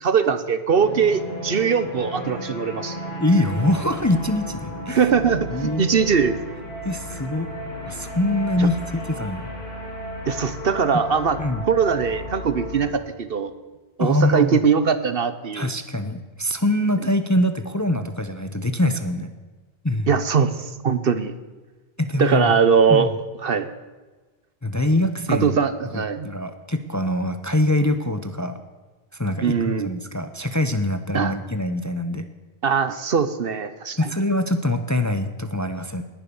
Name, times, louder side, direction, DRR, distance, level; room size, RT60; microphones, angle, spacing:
voice 1, 0.0-3.0 4.9-6.4 8.6-8.7 10.3-11.4 11.7-13.5 14.0-15.7 20.1-21.3 22.2-23.1 23.4-23.7 25.3-26.3 29.4-29.9 31.1-31.3 32.6-34.1, right 6 dB, 55° right, 13 dB, 1.0 m, -21 dB
sound 1, 0.8-12.9, equal, 60° left, 3.6 m, -34 dB
voice 2, 3.2-5.0 5.5-5.8 6.8-7.5 7.9-8.8 9.1-9.5 11.4-11.6 14.0-14.6 15.5-19.3 19.8-20.1 22.0-22.6 22.9-23.1 24.6-25.6 25.9-28.6 29.1-32.2 34.0-36.0, left 1 dB, 15° left, 9 dB, 0.8 m, -23 dB
19.0 x 11.0 x 7.0 m, 1.3 s
omnidirectional pair, 1.2 m